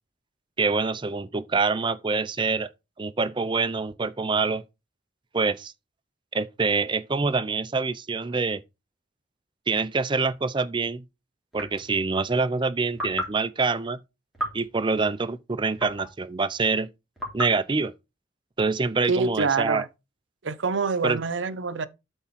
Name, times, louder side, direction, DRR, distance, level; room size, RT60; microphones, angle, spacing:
voice 1, 0.6-2.7 3.0-4.6 5.3-5.7 6.3-8.6 9.7-11.0 11.5-14.0 14.5-16.9 17.3-17.9 18.6-19.8 21.0-21.2, right 4 dB, 25° right, 0.5 m, -25 dB
sound 1, 10.3-10.4 11.5-12.0 12.9-13.4 14.3-14.7 15.8-16.2 17.2-17.6, equal, ahead, 2.8 m, -33 dB
voice 2, 19.1-19.9 20.4-21.9, right 4 dB, 80° right, 0.7 m, -26 dB
8.2 x 3.6 x 5.7 m
head